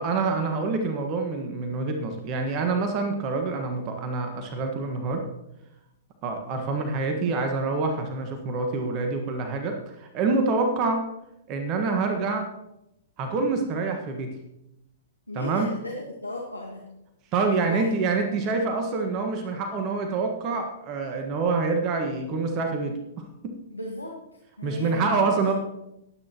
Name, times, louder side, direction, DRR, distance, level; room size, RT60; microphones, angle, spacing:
voice 1, 0.0-5.2 6.2-11.1 11.5-12.5 13.2-14.4 15.3-15.7 17.3-23.5 24.6-25.5, right 3 dB, 35° right, 4 dB, 1.5 m, -26 dB
voice 2, 15.3-16.9 17.5-18.0 23.7-25.2, left 1 dB, 90° left, 0 dB, 1.6 m, -36 dB
20.0 x 8.9 x 3.0 m, 0.86 s
figure-of-eight pair, 110°, 0 cm